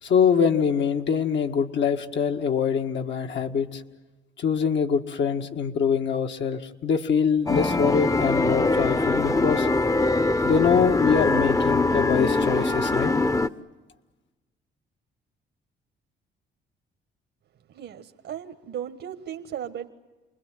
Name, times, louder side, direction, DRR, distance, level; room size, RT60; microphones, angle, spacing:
voice 1, 0.0-3.8 4.4-9.7 10.4-13.1, left 6 dB, 65° left, 3 dB, 1.9 m, -24 dB
sound 1, 7.5-13.5, left 2 dB, 15° left, 0.9 m, -23 dB
voice 2, 17.7-19.9, right 9 dB, 70° right, 6 dB, 1.5 m, -36 dB
28.5 x 20.5 x 9.2 m, 1.2 s
cardioid pair, 90°, 20 cm